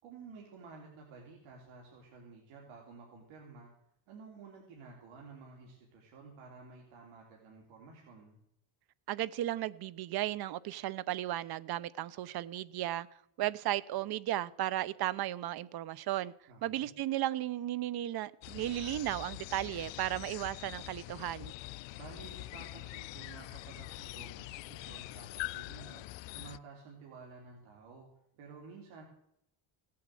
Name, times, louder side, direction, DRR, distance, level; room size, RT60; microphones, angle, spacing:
voice 1, 0.0-3.7 4.1-8.4 16.5-16.9 21.9-28.1 28.3-29.0, right 4 dB, 70° right, 3.5 m, -52 dB
voice 2, 9.1-13.1 13.4-16.3 16.6-21.5, right 14 dB, 50° right, 0.7 m, -35 dB
sound 1, 18.4-26.6, left 20 dB, 65° left, 0.5 m, -44 dB
17.0 x 8.6 x 7.7 m
cardioid pair, 135°, 50 cm